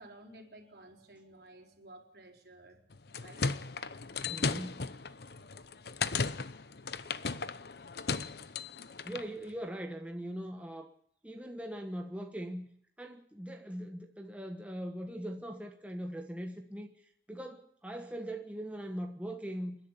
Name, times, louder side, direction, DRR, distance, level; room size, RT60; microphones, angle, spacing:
voice 1, 0.0-2.8 3.2-3.7, right 1 dB, 60° right, 4.6 m, -54 dB
sound 1, 2.9-9.3, left 4 dB, 60° left, 0.8 m, -36 dB
voice 2, 4.3-4.9 9.0-10.9 11.2-12.7 13.0-16.9 17.3-19.8, equal, 10° right, 1.3 m, -40 dB
28.5 x 11.0 x 10.0 m
head